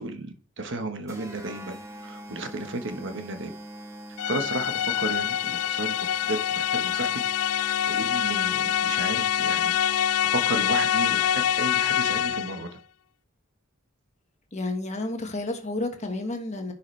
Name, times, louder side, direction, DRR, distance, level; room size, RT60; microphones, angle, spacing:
voice 1, 0.0-3.5 4.3-5.9 6.3-7.2 7.5-12.7, right 2 dB, 60° right, 7 dB, 1.2 m, -34 dB
sound 1, 1.1-12.5, right 1 dB, 15° right, 1.5 m, -44 dB
sound 2, 4.2-12.6, left 10 dB, 85° left, 0.3 m, -25 dB
voice 2, 14.5-16.7, left 2 dB, 35° left, 4 dB, 1.4 m, -31 dB
10.5 x 5.8 x 3.2 m, 0.38 s
head